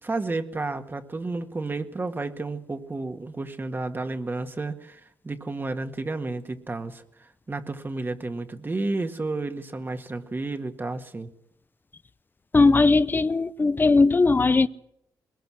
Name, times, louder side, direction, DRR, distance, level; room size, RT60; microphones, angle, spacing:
voice 1, 0.0-11.3, right 3 dB, 30° right, 1.8 m, -31 dB
voice 2, 12.5-14.7, left 3 dB, 30° left, 0.7 m, -19 dB
21.5 x 20.0 x 6.2 m
cardioid pair, 75°, 7 cm